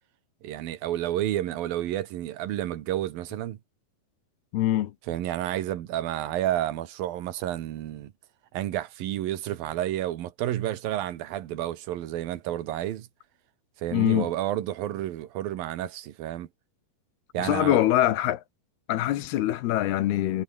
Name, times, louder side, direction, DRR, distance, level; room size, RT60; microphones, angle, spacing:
voice 1, 0.4-3.6 5.1-8.1 8.5-13.1 13.8-16.5 17.3-17.8, right 13 dB, 65° right, 2.9 m, -30 dB
voice 2, 4.5-4.9 13.9-14.3 17.4-18.4 18.9-20.4, left 14 dB, 75° left, 3.1 m, -24 dB
omnidirectional pair, 4.8 m